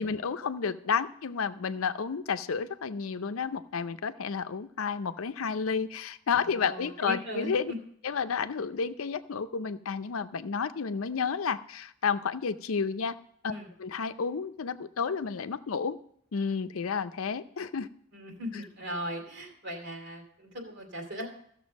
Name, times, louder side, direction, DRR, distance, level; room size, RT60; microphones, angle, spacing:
voice 1, 0.0-7.7 8.0-13.2 13.4-13.5 13.8-16.0 16.3-17.9, left 5 dB, 80° left, 11 dB, 0.5 m, -31 dB
voice 2, 6.4-7.5 13.5-13.7 18.1-21.3, equal, 55° right, 2 dB, 2.6 m, -38 dB
14.5 x 6.7 x 5.2 m, 0.67 s
head